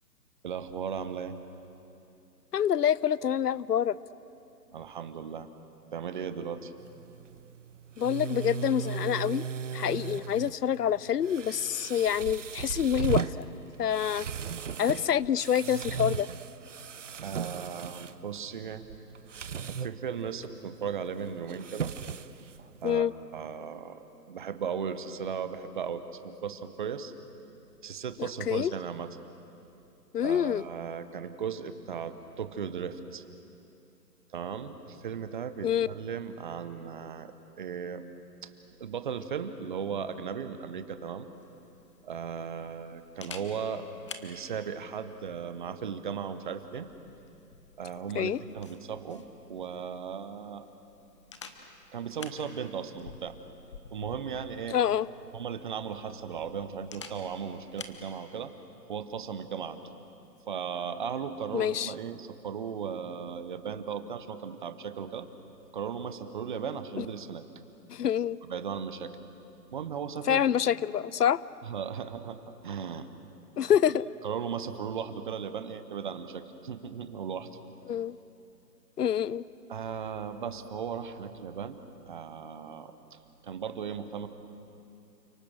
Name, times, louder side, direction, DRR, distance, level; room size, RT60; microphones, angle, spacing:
voice 1, 0.4-1.4 4.7-5.5 5.9-6.7 9.9-10.0 17.2-18.9 19.4-21.9 22.8-27.1 27.8-29.1 30.2-33.2 34.3-38.1 38.4-38.5 38.8-41.3 42.0-43.9 44.2-46.9 47.8-50.7 51.9-53.4 53.9-54.8 55.3-58.5 58.9-59.8 60.5-65.3 65.7-67.4 68.5-69.2 69.7-70.4 71.6-73.1 74.2-77.5 79.7-83.2 83.4-84.3, right 7 dB, 30° right, 11 dB, 1.1 m, -37 dB
voice 2, 2.5-4.0 8.0-9.4 9.7-13.5 13.8-14.3 14.8-16.3 22.8-23.1 28.2-28.7 30.1-30.7 35.6-35.9 48.1-48.4 54.7-55.1 61.5-61.9 67.0-67.1 67.9-68.4 70.2-71.4 73.6-74.1 77.9-78.2 79.0-79.4, left 9 dB, 70° left, 21 dB, 0.7 m, -27 dB
sound 1, 6.8-23.0, right 6 dB, 50° right, 0.8 m, -37 dB
Camera, 41.3-58.0, left 5 dB, 20° left, 0.8 m, -51 dB
30.0 x 27.0 x 6.5 m, 2.8 s
hypercardioid pair, 155°, 50 cm